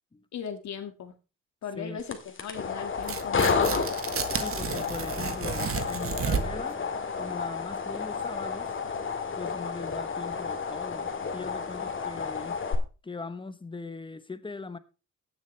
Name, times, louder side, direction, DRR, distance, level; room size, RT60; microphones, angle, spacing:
voice 1, 0.3-1.1 1.6-3.8, left 7 dB, 65° left, 2.0 m, -38 dB
sound 1, 2.0-12.7, left 5 dB, 40° left, 2.1 m, -31 dB
Tearing, 3.0-6.7, right 6 dB, 45° right, 1.3 m, -32 dB
voice 2, 4.3-6.8 7.2-8.7 9.4-12.6 13.0-14.8, left 3 dB, 15° left, 1.0 m, -40 dB
17.0 x 7.3 x 3.3 m
cardioid pair, 90°, 30 cm